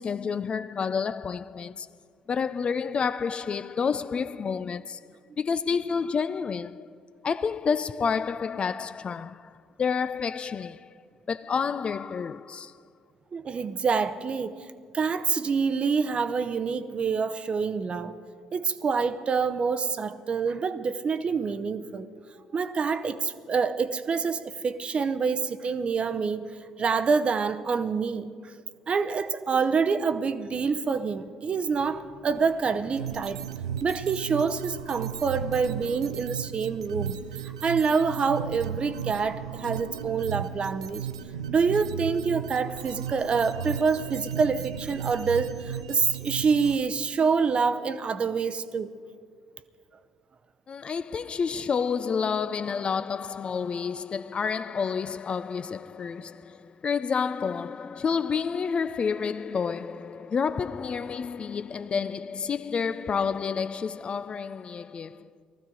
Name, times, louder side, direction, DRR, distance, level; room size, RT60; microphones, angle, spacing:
voice 1, 0.0-1.9 2.3-5.0 5.4-6.9 7.2-10.9 11.3-12.8 50.7-65.3, left 6 dB, 40° left, 0.4 m, -29 dB
voice 2, 13.3-14.6 14.9-18.2 18.5-22.1 22.5-26.5 26.8-28.3 28.9-33.5 33.8-37.2 37.4-41.1 41.5-48.9, right 5 dB, 40° right, 0.7 m, -26 dB
sound 1, 33.0-46.8, right 9 dB, 85° right, 0.4 m, -35 dB
20.0 x 14.5 x 3.9 m
hypercardioid pair, 50°, 3 cm